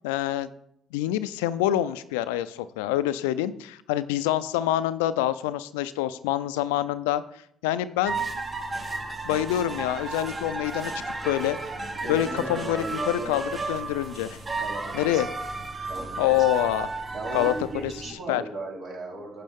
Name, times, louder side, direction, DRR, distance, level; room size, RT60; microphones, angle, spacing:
voice 1, 0.0-0.5 0.9-7.2 7.6-8.1 9.2-10.9 11.2-11.6 12.1-14.4 14.9-15.3 16.2-16.9 17.3-17.5 17.8-17.9 18.3-18.4, left 13 dB, 85° left, 14 dB, 0.4 m, -26 dB
sound 1, 8.0-18.1, right 3 dB, 30° right, 1.4 m, -33 dB
voice 2, 11.9-13.5 14.6-15.2 15.9-16.4 17.1-19.4, right 2 dB, 60° right, -1 dB, 3.1 m, -37 dB
9.4 x 7.3 x 3.6 m, 0.70 s
hypercardioid pair, 55°, 0 cm